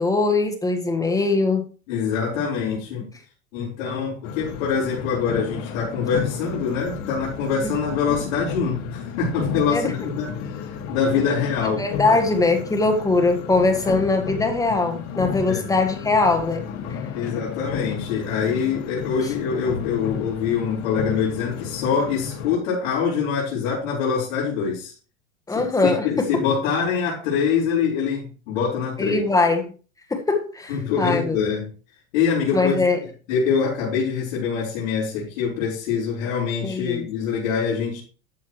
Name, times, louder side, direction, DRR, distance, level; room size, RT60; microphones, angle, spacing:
voice 1, 0.0-1.7 7.6-7.7 9.7-9.9 11.6-17.0 25.5-26.4 29.0-29.7 30.1-31.4 32.5-33.0 36.6-37.1, left 3 dB, 10° left, 1.6 m, -21 dB
voice 2, 1.9-3.1 3.5-12.2 15.4-15.7 17.1-24.9 25.5-29.2 30.7-31.7 32.1-32.8 33.3-38.0, left 6 dB, 60° left, 5.0 m, -24 dB
sound 1, 4.2-22.6, left 7 dB, 45° left, 2.0 m, -33 dB
12.5 x 6.8 x 3.2 m
supercardioid pair, 140°, 41 cm